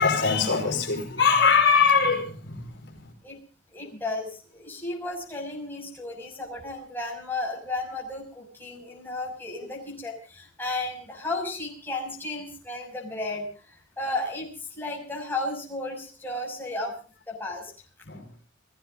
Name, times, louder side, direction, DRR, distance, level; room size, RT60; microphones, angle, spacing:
voice 1, 0.0-3.0 18.0-18.2, left 5 dB, 60° left, 4 dB, 4.8 m, -22 dB
voice 2, 3.7-16.9 17.3-17.7, left 2 dB, 10° left, -1 dB, 6.2 m, -34 dB
30.0 x 18.0 x 2.6 m, 0.38 s
head